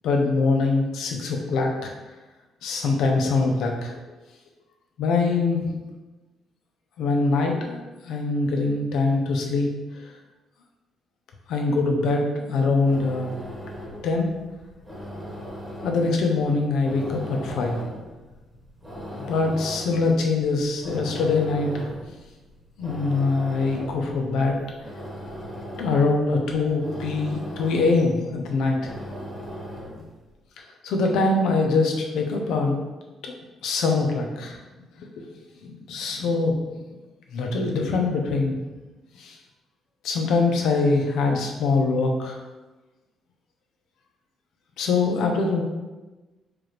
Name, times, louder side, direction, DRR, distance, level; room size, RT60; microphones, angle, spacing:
voice 1, 0.0-1.9 2.6-3.9 5.0-5.7 7.0-9.7 11.5-13.3 14.0-14.3 15.8-17.8 18.9-21.9 22.8-24.6 25.8-28.9 30.8-32.8 33.2-33.3 33.6-34.6 35.0-35.1 35.6-36.6 37.3-38.6 39.2-39.4 40.0-42.4 44.8-45.6, left 3 dB, 85° left, 2 dB, 0.6 m, -23 dB
sound 1, 12.8-30.2, equal, 15° right, 1.1 m, -39 dB
4.6 x 2.5 x 3.1 m, 1.1 s
cardioid pair, 120°, 0 cm